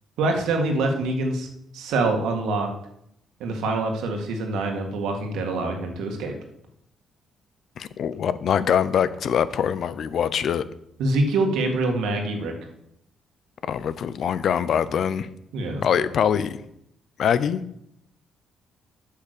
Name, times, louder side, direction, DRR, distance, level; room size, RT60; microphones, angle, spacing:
voice 1, 0.2-1.5 1.7-2.7 3.4-6.3 11.0-12.5 15.5-15.8, right 2 dB, 85° right, 3 dB, 1.9 m, -25 dB
voice 2, 7.8-10.6 13.6-15.3 15.8-16.6 17.2-17.6, left 8 dB, 65° left, 15 dB, 0.6 m, -23 dB
8.3 x 5.7 x 6.8 m, 0.76 s
cardioid pair, 90°, 0 cm